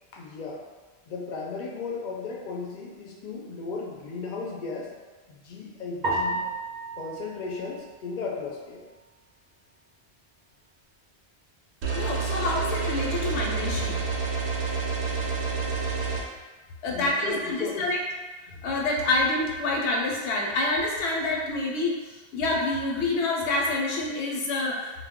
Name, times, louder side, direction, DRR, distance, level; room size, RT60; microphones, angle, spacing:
voice 1, 0.1-0.6 1.1-4.9 5.3-6.5 6.9-8.9 16.9-18.0 18.5-18.6, left 4 dB, 55° left, -2 dB, 0.6 m, -35 dB
sound 1, 6.0-8.5, right 2 dB, 50° right, 0.6 m, -32 dB
sound 2, 11.8-16.2, right 5 dB, 90° right, 0.9 m, -28 dB
voice 2, 11.9-14.0 16.8-18.0 18.6-25.1, left 2 dB, 85° left, -1 dB, 0.9 m, -27 dB
2.2 x 2.1 x 3.5 m, 1.3 s
omnidirectional pair, 1.1 m